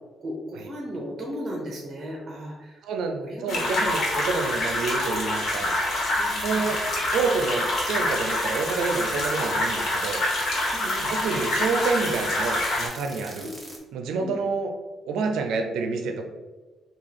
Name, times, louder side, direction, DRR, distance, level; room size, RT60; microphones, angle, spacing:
voice 1, 0.2-2.8 3.2-3.7 6.2-6.7 10.7-11.1 13.4-13.7 14.2-14.4, equal, 35° right, -2 dB, 0.7 m, -36 dB
voice 2, 2.8-5.8 6.4-6.8 7.1-10.2 11.1-13.5 13.9-14.7 15.0-16.2, right 4 dB, 85° right, 4 dB, 0.5 m, -28 dB
sound 1, 3.5-12.9, left 1 dB, 60° left, 1.3 m, -26 dB
sound 2, 6.3-13.8, equal, 5° right, 0.8 m, -43 dB
3.5 x 2.4 x 3.3 m, 1.3 s
cardioid pair, 90°, 0 cm